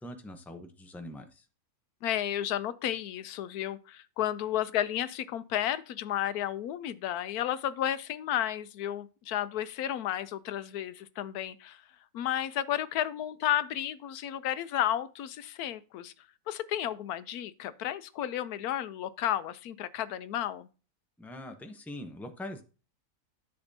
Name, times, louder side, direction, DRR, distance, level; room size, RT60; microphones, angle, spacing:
voice 1, 0.0-1.4 21.2-22.6, left 1 dB, ahead, 0.4 m, -43 dB
voice 2, 2.0-11.8 12.1-16.1 16.5-20.7, left 11 dB, 90° left, 1.1 m, -32 dB
10.0 x 6.9 x 2.7 m
omnidirectional pair, 1.6 m